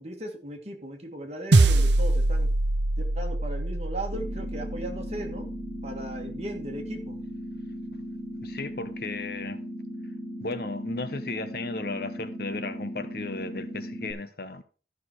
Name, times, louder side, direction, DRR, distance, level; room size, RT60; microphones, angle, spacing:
voice 1, 0.0-2.5 3.0-5.6 5.8-7.2, right 1 dB, 35° right, 2.1 m, -37 dB
sound 1, 1.5-6.1, right 2 dB, 80° right, 0.7 m, -24 dB
sound 2, 4.1-14.1, equal, 5° left, 3.4 m, -37 dB
voice 2, 8.4-9.6 10.4-14.6, left 3 dB, 60° left, 1.0 m, -35 dB
13.0 x 6.0 x 4.7 m
head